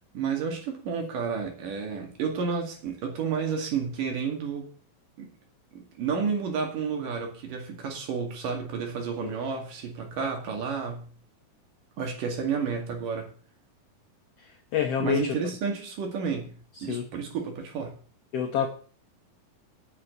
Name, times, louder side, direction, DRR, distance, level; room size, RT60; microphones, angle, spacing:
voice 1, 0.1-4.7 5.2-5.3 5.7-11.1 12.0-13.3 15.0-18.0, right 6 dB, 70° right, 3.8 m, -31 dB
voice 2, 14.4-15.3 16.7-17.1 18.3-18.7, left 8 dB, 75° left, 1.4 m, -28 dB
9.2 x 6.3 x 8.0 m
omnidirectional pair, 4.1 m